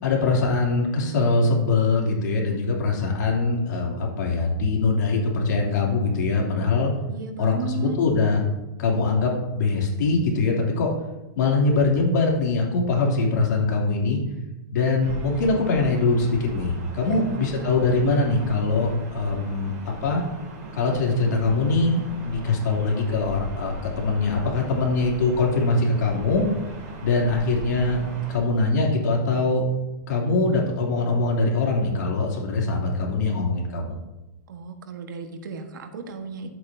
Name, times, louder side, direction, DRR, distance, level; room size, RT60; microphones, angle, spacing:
voice 1, 0.0-6.9 7.4-8.4 8.8-10.9 11.4-14.2 14.7-19.7 20.0-20.2 20.7-26.4 27.0-29.6 30.1-33.9, left 3 dB, 70° left, -2 dB, 2.9 m, -22 dB
voice 2, 7.1-8.0 17.0-17.5 34.5-36.5, right 4 dB, 85° right, 5 dB, 1.4 m, -35 dB
Gull seagull / Ocean, 15.0-28.4, right 2 dB, 50° right, 3.4 m, -38 dB
11.0 x 8.2 x 2.7 m, 1.0 s
supercardioid pair, 170°, 10 cm